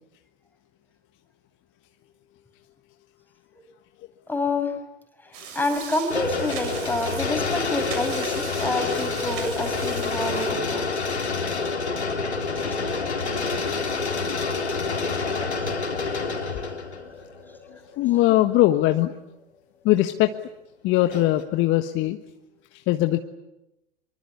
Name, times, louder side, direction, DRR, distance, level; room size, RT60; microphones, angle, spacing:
voice 1, 4.3-4.7 5.5-11.1 12.7-12.8 18.3-18.4, left 2 dB, 5° left, 5 dB, 6.3 m, -28 dB
sound 1, 5.3-10.5, right 7 dB, 45° right, 7.8 m, -39 dB
sound 2, 6.1-18.2 18.8-18.9 21.1-21.4, left 4 dB, 85° left, 3.8 m, -28 dB
voice 2, 18.0-19.1 19.8-20.3 20.8-22.2 22.9-23.2, left 15 dB, 35° left, 8 dB, 1.5 m, -20 dB
25.0 x 24.5 x 9.6 m, 0.93 s
figure-of-eight pair, 95°, 32 cm